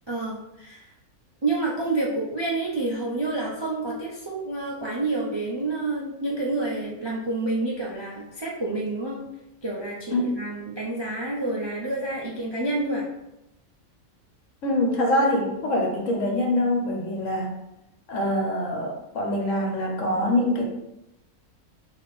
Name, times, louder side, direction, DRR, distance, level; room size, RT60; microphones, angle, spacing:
voice 1, 0.1-0.9 1.4-9.2 9.6-13.0, right 2 dB, 45° right, -4 dB, 0.3 m, -28 dB
voice 2, 10.1-10.4 14.6-17.5 18.1-20.7, left 1 dB, 65° left, 1 dB, 1.1 m, -24 dB
3.6 x 3.0 x 4.1 m, 0.88 s
omnidirectional pair, 1.5 m